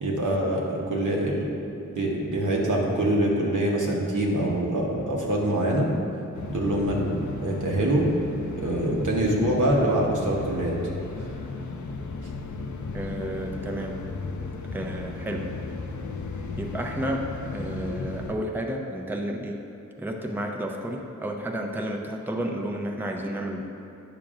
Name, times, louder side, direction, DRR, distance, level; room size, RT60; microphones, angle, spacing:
voice 1, 0.0-1.5 1.9-5.9 6.5-8.1 8.5-10.7, right 1 dB, 85° right, -2 dB, 1.0 m, -25 dB
sound 1, 6.3-18.3, left 3 dB, 75° left, 0.5 m, -35 dB
voice 2, 12.9-14.0 14.7-15.5 16.6-19.6 20.0-23.6, right 1 dB, 5° right, 1 dB, 0.5 m, -31 dB
8.6 x 5.8 x 2.5 m, 2.9 s
wide cardioid pair, 70°, 30 cm